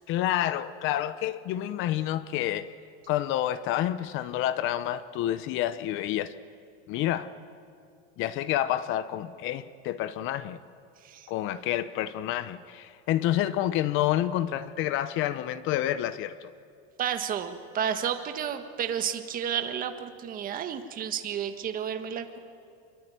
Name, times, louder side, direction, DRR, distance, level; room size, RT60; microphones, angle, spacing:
voice 1, 0.1-2.7 3.1-6.3 6.9-7.3 8.2-10.6 11.3-16.5, left 12 dB, 40° left, 0.8 m, -28 dB
voice 2, 17.0-22.4, right 8 dB, 25° right, 1.6 m, -31 dB
25.5 x 23.0 x 9.5 m
cardioid pair, 165°, 31 cm